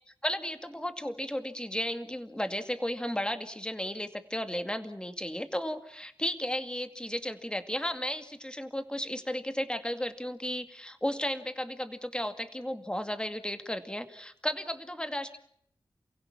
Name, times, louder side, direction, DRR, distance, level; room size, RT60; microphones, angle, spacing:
voice 1, 0.2-15.4, left 1 dB, 10° left, 8 dB, 2.3 m, -34 dB
29.0 x 16.5 x 7.4 m, 0.67 s
cardioid pair, 50°, 9 cm